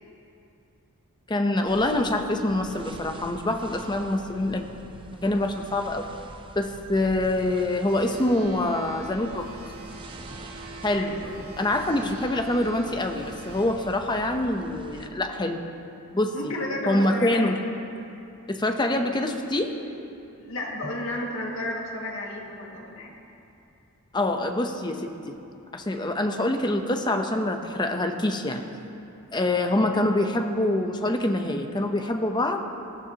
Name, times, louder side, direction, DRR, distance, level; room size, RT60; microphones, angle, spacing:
voice 1, 1.3-4.6 5.2-6.1 6.6-9.5 10.8-11.2 11.6-15.6 16.1-16.5 16.9-17.6 18.5-19.7 24.1-25.4 25.7-28.6 29.3-32.6, left 1 dB, 20° left, 5 dB, 0.8 m, -25 dB
sound 1, 1.7-15.1, right 2 dB, 25° right, 0.5 m, -45 dB
sound 2, 7.9-13.6, right 2 dB, 85° right, 2.3 m, -44 dB
voice 2, 11.0-11.3 16.3-17.5 20.4-23.1, left 1 dB, 65° left, -2 dB, 2.1 m, -32 dB
19.0 x 14.0 x 2.9 m, 2.7 s
head